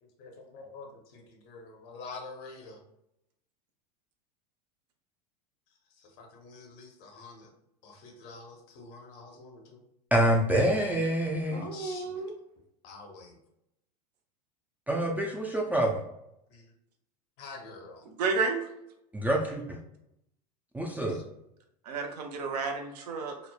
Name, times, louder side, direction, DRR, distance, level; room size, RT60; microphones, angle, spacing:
voice 1, 0.2-2.8 6.2-7.5 7.8-9.8 11.5-12.2 12.8-13.4 16.5-16.7 17.4-18.0 21.1-21.2, left 3 dB, 50° left, 3 dB, 0.8 m, -47 dB
voice 2, 10.1-11.7 14.9-16.0 19.1-19.8 20.7-21.2, right 1 dB, 10° right, -1 dB, 0.3 m, -26 dB
voice 3, 11.5-12.3 18.2-18.7 21.8-23.3, right 4 dB, 70° right, 3 dB, 0.6 m, -31 dB
3.1 x 2.0 x 2.2 m, 0.81 s
hypercardioid pair, 90°, 21 cm